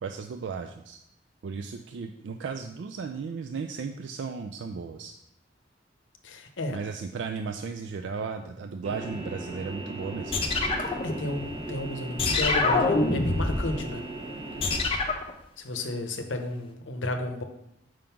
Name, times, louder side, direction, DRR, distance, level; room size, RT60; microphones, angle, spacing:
voice 1, 0.0-1.0 1.4-5.1 6.7-10.4, right 5 dB, 70° right, 6 dB, 0.4 m, -35 dB
voice 2, 6.2-6.8 10.8-14.0 15.6-17.4, left 2 dB, 85° left, 6 dB, 0.8 m, -32 dB
sound 1, 8.8-14.8, right 2 dB, 30° right, 0.7 m, -38 dB
sound 2, 10.3-11.7 12.2-13.7 14.6-15.3, left 3 dB, 30° left, 0.6 m, -26 dB
5.1 x 3.7 x 5.7 m, 0.80 s
head